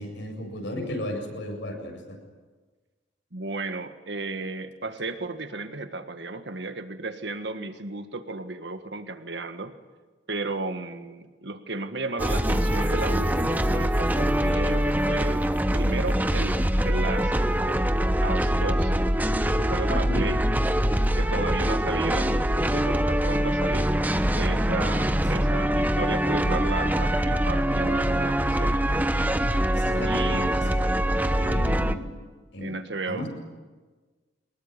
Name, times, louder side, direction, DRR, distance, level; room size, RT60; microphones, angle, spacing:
voice 1, 0.0-2.2 19.9-20.3 25.4-25.6 29.7-32.1 32.5-32.8 33.1-33.3, left 1 dB, 80° left, 3 dB, 7.8 m, -35 dB
voice 2, 3.3-9.7 10.3-15.5 15.7-17.3 17.6-17.8 18.2-18.9 19.6-20.4 21.1-23.9 24.3-28.8 30.0-30.6 32.6-33.3, right 3 dB, 75° right, 8 dB, 1.7 m, -34 dB
sound 1, 12.2-32.0, equal, 10° right, 1.0 m, -24 dB
24.5 x 21.0 x 9.9 m, 1.3 s
head